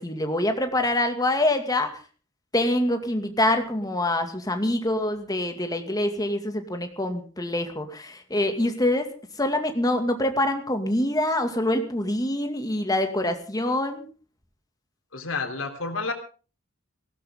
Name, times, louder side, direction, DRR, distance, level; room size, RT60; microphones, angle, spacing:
voice 1, 0.0-1.9 2.5-14.1, left 1 dB, 20° left, 6 dB, 2.3 m, -25 dB
voice 2, 15.1-16.1, left 4 dB, 80° left, 5 dB, 3.5 m, -30 dB
19.0 x 17.0 x 3.8 m, 0.36 s
head